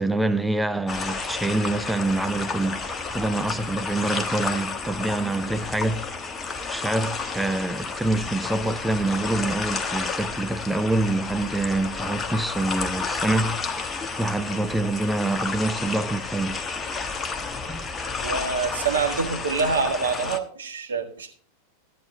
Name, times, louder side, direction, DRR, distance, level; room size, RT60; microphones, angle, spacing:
voice 1, 0.0-2.9 3.1-6.1 6.7-16.7 17.7-17.9, right 2 dB, 5° right, 0.5 m, -26 dB
sound 1, 0.9-20.4, left 4 dB, 15° left, 1.2 m, -31 dB
voice 2, 18.2-21.3, right 5 dB, 65° right, 1.8 m, -26 dB
14.5 x 9.3 x 4.0 m
figure-of-eight pair, 90°, 0 cm